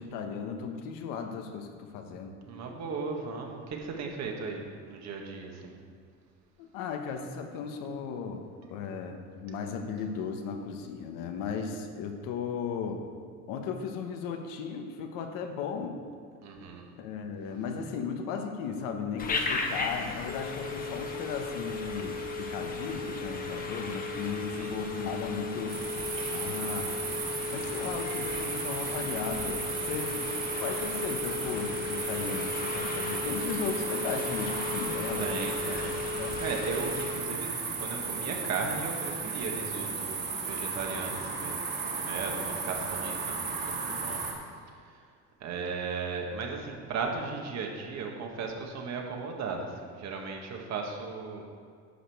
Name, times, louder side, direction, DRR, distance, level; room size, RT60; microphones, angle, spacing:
voice 1, 0.0-2.4 6.6-13.0 13.5-16.0 17.0-25.8 26.3-26.9 27.5-30.2 30.6-35.7 36.2-36.4, left 6 dB, 85° left, 4 dB, 1.4 m, -36 dB
voice 2, 2.5-5.7 8.6-8.7 16.4-16.9 24.3-24.7 29.8-29.9 35.2-36.0 36.4-44.2 45.4-51.4, right 4 dB, 55° right, 1 dB, 1.8 m, -36 dB
Telephone, 19.2-37.3, left 3 dB, 25° left, 1.1 m, -35 dB
sound 1, 25.7-44.3, right 4 dB, 30° right, 2.1 m, -35 dB
11.0 x 5.3 x 7.8 m, 2.1 s
cardioid pair, 135°, 32 cm